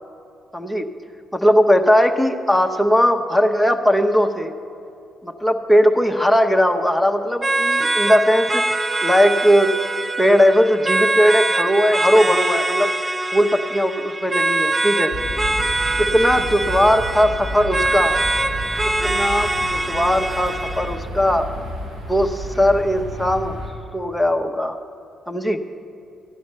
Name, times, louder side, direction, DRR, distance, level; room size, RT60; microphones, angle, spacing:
voice 1, 0.5-0.9 1.3-4.5 5.2-8.6 9.0-9.7 10.2-12.9 13.3-15.1 16.0-18.1 19.0-21.5 22.1-23.6 23.9-24.8 25.3-25.7, equal, ahead, 4 dB, 0.9 m, -18 dB
sound 1, 7.4-21.0, right 2 dB, 20° right, 0.5 m, -23 dB
sound 2, 15.1-23.7, equal, 80° right, 4.0 m, -31 dB
15.0 x 10.0 x 5.5 m, 2.6 s
cardioid pair, 90°, 0 cm